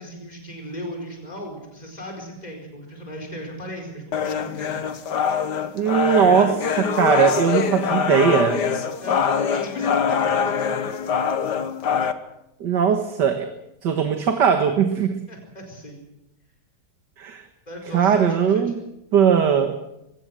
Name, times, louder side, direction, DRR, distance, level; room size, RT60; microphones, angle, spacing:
voice 1, 0.0-4.8 9.0-10.6 15.3-16.0 17.7-18.6, equal, 25° left, 2 dB, 4.7 m, -36 dB
sound 1, 4.1-12.1, left 7 dB, 80° left, 1.9 m, -24 dB
voice 2, 5.7-8.7 12.6-13.5 13.8-15.2 17.2-17.4 17.9-18.8 19.1-19.8, right 7 dB, 85° right, 7 dB, 2.0 m, -19 dB
22.0 x 18.0 x 7.6 m, 0.87 s
omnidirectional pair, 1.8 m